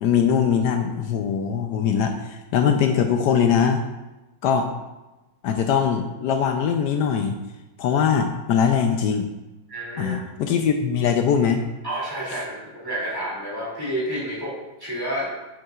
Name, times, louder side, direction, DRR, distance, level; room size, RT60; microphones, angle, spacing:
voice 1, 0.0-3.8 4.4-4.7 5.4-7.4 7.8-9.3 10.0-11.6, left 7 dB, 75° left, 5 dB, 1.1 m, -21 dB
voice 2, 9.7-10.2 11.8-14.5 14.8-15.3, right 1 dB, 10° right, -7 dB, 2.4 m, -29 dB
7.8 x 7.5 x 2.4 m, 1.1 s
omnidirectional pair, 1.8 m